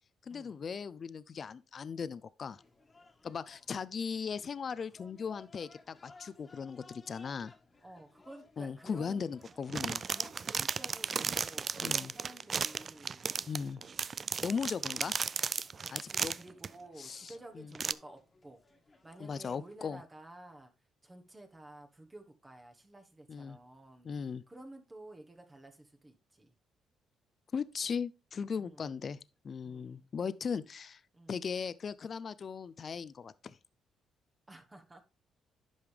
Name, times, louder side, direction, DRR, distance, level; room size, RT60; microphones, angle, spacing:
voice 1, 0.2-2.6 3.2-7.5 8.6-10.0 11.8-12.1 13.5-13.8 14.4-15.1 15.9-16.3 17.0-17.7 19.2-20.0 23.3-23.6 24.0-24.4 27.5-29.2 29.4-31.0 31.3-33.6, left 6 dB, 45° left, 0.5 m, -38 dB
sound 1, 2.5-19.8, left 3 dB, 25° left, 1.5 m, -61 dB
voice 2, 7.8-9.3 9.9-13.3 14.4-14.5 15.0-15.1 15.8-18.6 19.0-20.7 21.0-24.1 24.5-26.5 28.6-29.0 29.6-30.1 31.1-31.4 34.5-35.0, right 1 dB, 20° right, 1.2 m, -52 dB
sound 2, 9.5-16.7 17.3-17.4 17.7-17.9, right 6 dB, 45° right, 0.3 m, -34 dB
10.5 x 5.4 x 3.3 m
cardioid pair, 90°, 0 cm